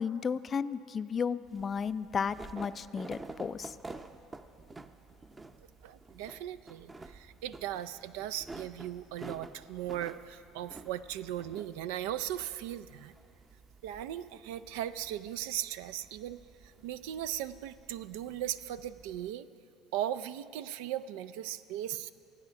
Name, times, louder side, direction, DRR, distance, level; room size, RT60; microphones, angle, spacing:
voice 1, 0.0-3.7, left 6 dB, 35° left, 15 dB, 0.4 m, -33 dB
sound 1, 1.4-19.3, right 3 dB, 20° right, 0.6 m, -50 dB
voice 2, 5.8-13.1 13.8-16.4 16.8-19.4 19.9-22.1, right 12 dB, 80° right, 12 dB, 0.4 m, -38 dB
15.5 x 9.5 x 5.8 m, 2.5 s
hypercardioid pair, 80°, 0 cm